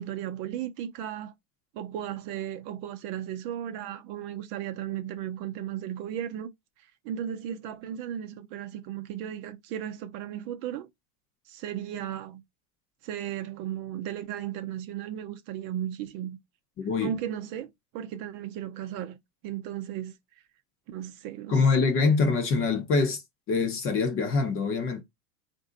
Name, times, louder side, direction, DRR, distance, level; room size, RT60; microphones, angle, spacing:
voice 1, 0.0-1.3 1.7-6.5 7.0-10.9 11.5-12.4 13.0-16.4 17.0-19.2 19.4-20.2 20.9-21.9, right 10 dB, 40° right, 0.7 m, -35 dB
voice 2, 21.5-23.2 23.5-25.0, left 4 dB, 25° left, 0.9 m, -24 dB
3.9 x 2.6 x 3.8 m
supercardioid pair, 130°, 48 cm